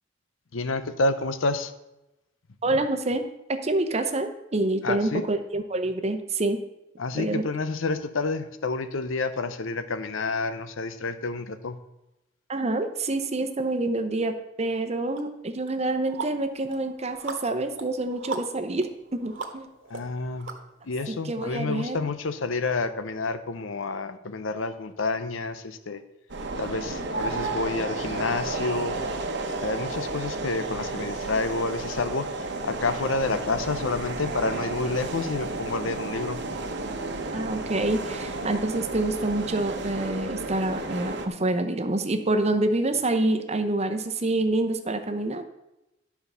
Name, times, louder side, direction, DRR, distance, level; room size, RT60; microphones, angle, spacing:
voice 1, 0.5-1.7 4.8-5.2 7.0-11.8 19.9-20.5 20.8-26.0 26.6-29.0 29.6-36.4, left 3 dB, 85° left, 11 dB, 0.8 m, -29 dB
voice 2, 2.6-3.3 3.6-6.6 7.1-7.4 12.5-19.7 21.1-22.1 37.3-45.4, right 2 dB, 35° right, 7 dB, 0.8 m, -27 dB
sound 1, 15.1-15.2 15.7-21.0, right 4 dB, 85° right, 1.4 m, -39 dB
sound 2, 26.3-41.3, right 2 dB, 60° right, 1.0 m, -32 dB
11.5 x 4.7 x 6.8 m, 0.94 s
head